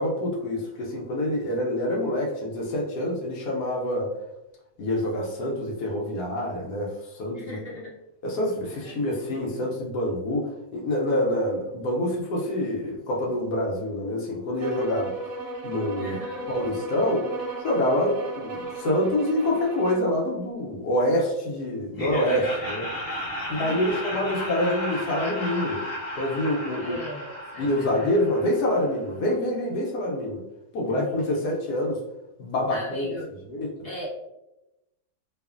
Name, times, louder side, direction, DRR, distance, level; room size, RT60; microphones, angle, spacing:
voice 1, 0.0-4.1 4.8-7.6 8.2-15.1 15.6-16.2 16.5-17.3 17.6-22.9 23.5-25.8 26.1-26.9 27.6-30.4 30.7-32.0 32.4-33.1 33.5-33.7, left 1 dB, 80° left, -2 dB, 1.1 m, -26 dB
voice 2, 7.3-7.9 8.8-9.2 16.0-16.5 23.4-24.0 26.8-27.3 27.5-28.1 30.9-31.5 32.7-33.3 33.8-34.1, left 1 dB, 45° left, -7 dB, 1.0 m, -39 dB
sound 1, 14.6-20.1, right 2 dB, 90° right, 1.3 m, -36 dB
Laughter, 21.9-28.9, left 1 dB, 15° left, 0.9 m, -34 dB
2.7 x 2.4 x 2.3 m, 0.92 s
omnidirectional pair, 1.7 m